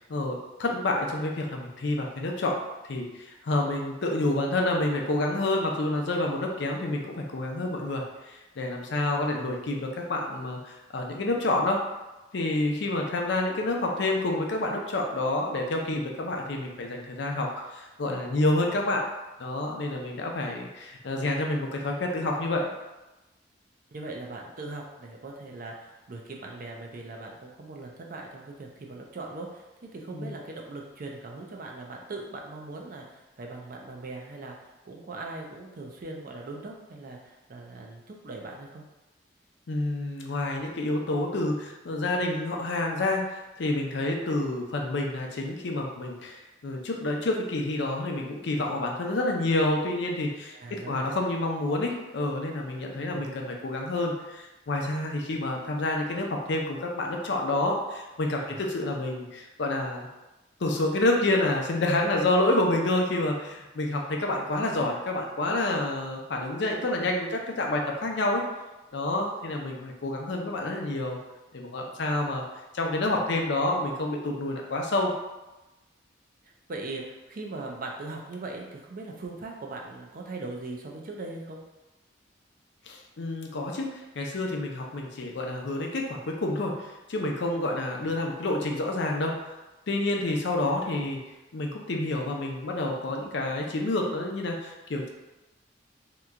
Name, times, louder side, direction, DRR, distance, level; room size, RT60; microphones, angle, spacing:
voice 1, 0.1-2.6 2.9-11.8 12.3-19.0 19.4-22.7 30.1-30.3 39.7-60.1 60.6-68.4 68.9-71.2 71.5-72.4 72.7-75.1 82.9-89.5 89.9-91.2 91.5-95.1, left 2 dB, 65° left, 1 dB, 0.5 m, -28 dB
voice 2, 23.9-38.8 50.5-51.1 53.1-53.3 58.5-58.6 73.1-73.2 76.4-81.6 88.0-88.1, right 2 dB, 45° right, 0 dB, 0.5 m, -40 dB
2.9 x 2.2 x 3.6 m, 1.0 s
head